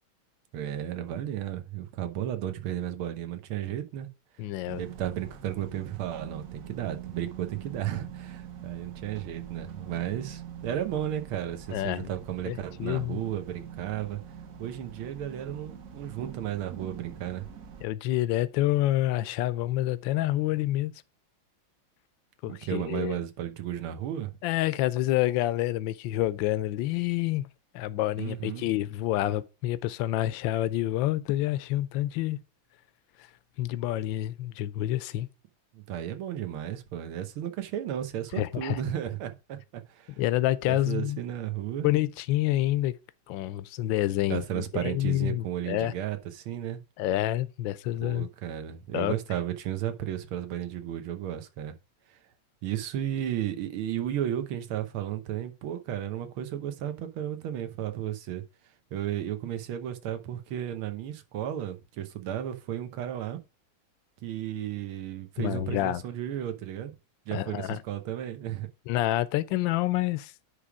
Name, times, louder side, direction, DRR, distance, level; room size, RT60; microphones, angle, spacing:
voice 1, 0.5-4.1 4.8-14.2 14.6-17.5 22.5-24.3 28.2-28.7 35.7-40.2 40.6-41.9 44.3-46.8 48.0-51.8 52.1-52.2 52.6-58.4 58.9-63.4 64.2-67.0 67.3-68.7, right 11 dB, 85° right, 1.8 m, -34 dB
voice 2, 4.4-4.8 11.7-12.1 12.5-13.2 17.8-20.9 22.4-23.2 24.4-27.5 27.7-32.4 33.6-35.3 38.4-38.8 40.2-41.2 41.8-42.9 43.3-45.9 47.0-48.3 48.9-49.1 65.4-66.0 67.3-67.8 68.9-70.3, left 15 dB, 75° left, 1.2 m, -28 dB
sound 1, 4.7-17.9, right 8 dB, 55° right, 1.1 m, -44 dB
9.8 x 3.4 x 4.9 m
omnidirectional pair, 2.3 m